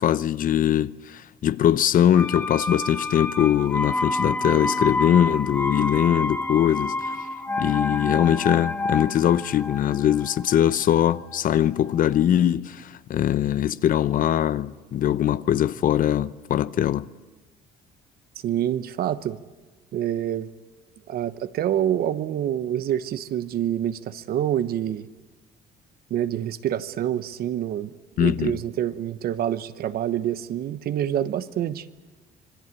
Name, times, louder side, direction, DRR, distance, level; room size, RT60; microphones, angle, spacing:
voice 1, 0.0-7.2 7.6-17.1 28.2-28.6, left 10 dB, 55° left, 0.8 m, -22 dB
sound 1, 2.1-11.9 12.2-12.3, left 2 dB, 10° left, 1.1 m, -29 dB
voice 2, 18.4-19.4 19.9-20.5 21.1-25.1 26.1-27.9 28.2-31.9, right 11 dB, 65° right, 1.1 m, -26 dB
26.5 x 22.0 x 8.5 m
cardioid pair, 110°, 17 cm